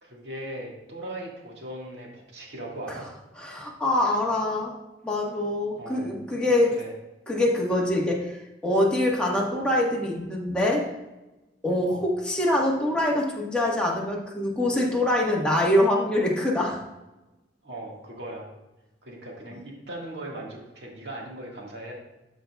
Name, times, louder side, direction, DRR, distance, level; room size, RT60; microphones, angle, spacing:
voice 1, 0.0-3.1 5.8-6.1 6.7-6.9 11.9-12.0 17.6-18.5 19.0-21.9, right 1 dB, 70° right, -2 dB, 2.0 m, -38 dB
voice 2, 3.4-4.7 5.0-6.7 7.3-8.4 8.6-10.8 11.6-16.8, left 1 dB, 5° left, -4 dB, 1.5 m, -24 dB
12.5 x 5.5 x 2.4 m, 1.0 s
head